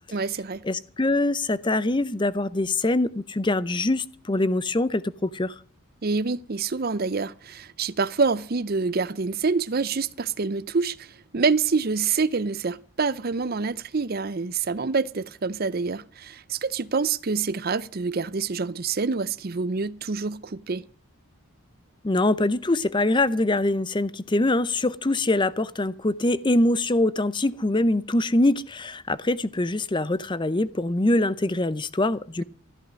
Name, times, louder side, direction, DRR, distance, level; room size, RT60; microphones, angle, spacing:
voice 1, 0.1-0.6 6.0-20.9, right 4 dB, 45° right, 0.6 m, -26 dB
voice 2, 0.6-5.5 22.0-32.4, left 2 dB, 20° left, 0.6 m, -24 dB
13.5 x 12.0 x 6.3 m
head